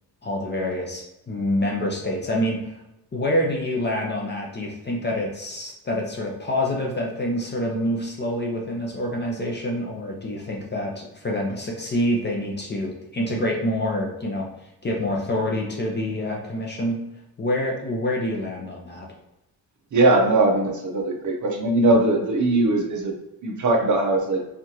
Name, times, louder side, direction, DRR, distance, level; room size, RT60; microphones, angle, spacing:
voice 1, 0.2-2.8 3.1-14.5 14.8-17.0 17.4-19.1, left 1 dB, 25° left, -1 dB, 0.6 m, -26 dB
voice 2, 19.9-23.1 23.4-24.4, right 2 dB, 45° right, 1 dB, 0.7 m, -20 dB
4.6 x 2.4 x 2.7 m, 0.91 s
wide cardioid pair, 160°, 40 cm